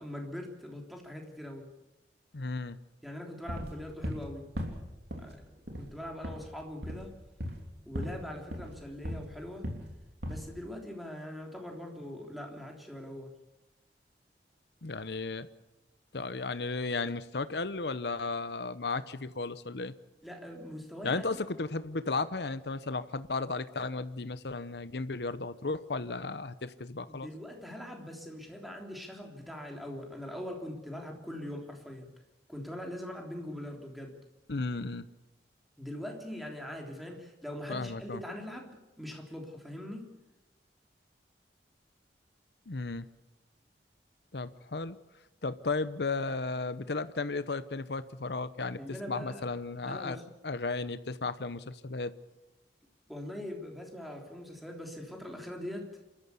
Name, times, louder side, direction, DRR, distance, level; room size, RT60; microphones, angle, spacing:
voice 1, 0.0-1.7 3.0-4.5 5.2-5.4 5.8-7.1 7.8-9.7 10.3-13.3 20.2-21.4 27.1-32.1 32.5-34.2 35.8-40.1 48.8-49.4 49.8-50.2 53.1-55.9, left 1 dB, ahead, 1 dB, 3.3 m, -42 dB
voice 2, 2.3-2.8 14.8-15.5 16.1-19.9 21.0-27.3 34.5-35.1 37.7-38.2 42.7-43.1 44.3-45.0 45.4-50.2 50.4-52.1, left 3 dB, 70° left, 14 dB, 0.9 m, -34 dB
sound 1, 3.5-4.3 4.6-5.3 5.7-5.9 6.2-6.5 6.8-7.1 7.4-7.7 7.9-8.2 8.5-9.3 9.6-9.9 10.2-10.5, equal, 65° right, 3.4 m, -37 dB
28.0 x 13.5 x 8.3 m, 1.0 s
head